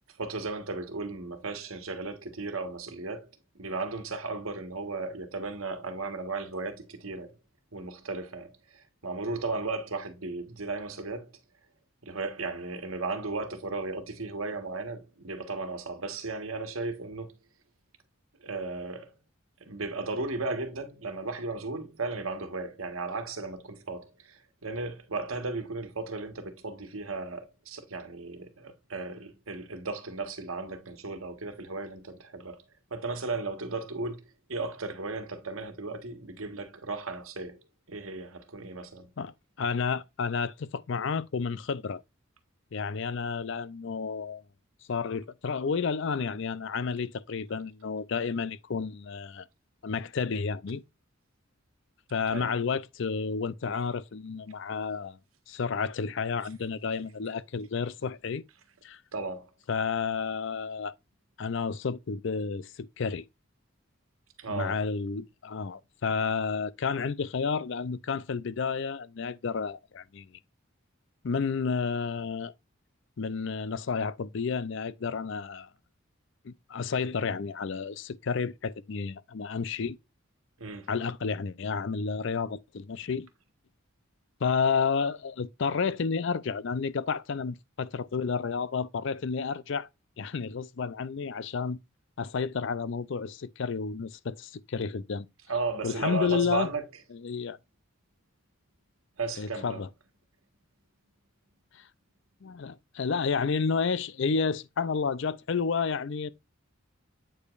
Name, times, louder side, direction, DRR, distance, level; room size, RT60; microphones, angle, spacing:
voice 1, 0.2-3.3 3.5-7.4 7.7-11.3 12.0-17.3 18.4-19.1 19.7-32.6 32.9-34.2 34.5-37.6 37.9-39.1 52.3-52.5 59.1-59.5 64.4-64.8 80.6-80.9 95.5-96.8 99.2-99.8, right 3 dB, 85° right, 1.4 m, -35 dB
voice 2, 39.2-42.0 42.7-44.4 44.9-49.5 49.8-50.8 52.1-55.2 55.5-58.4 58.8-59.0 59.7-60.9 61.4-63.2 64.5-70.3 71.2-72.5 73.2-75.7 76.4-80.0 80.9-83.3 84.4-89.9 90.2-91.8 92.2-95.3 95.8-96.7 97.2-97.6 99.4-99.9 101.7-101.8 102.4-106.3, left 5 dB, 60° left, 0.5 m, -31 dB
8.6 x 5.0 x 2.4 m
head